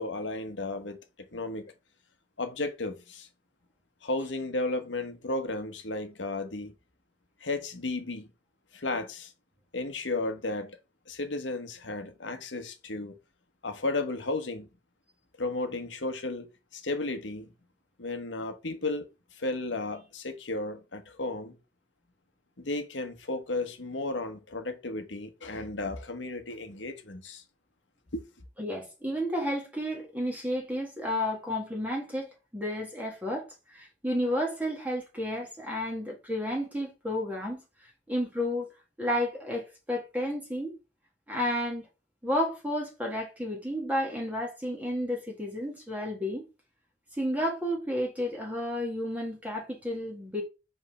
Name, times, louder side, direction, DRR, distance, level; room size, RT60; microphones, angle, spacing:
voice 1, 0.0-1.7 2.4-3.3 4.0-6.7 7.4-8.3 8.7-9.3 9.7-10.8 11.1-13.1 13.6-14.7 15.4-16.5 16.7-17.5 18.0-21.6 22.6-27.4 28.1-28.2, left 2 dB, 90° left, 1.3 m, -34 dB
voice 2, 28.6-37.6 38.1-38.7 39.0-40.7 41.3-41.9 42.2-46.5 47.2-50.4, equal, 10° right, 1.6 m, -31 dB
5.5 x 3.6 x 5.7 m
head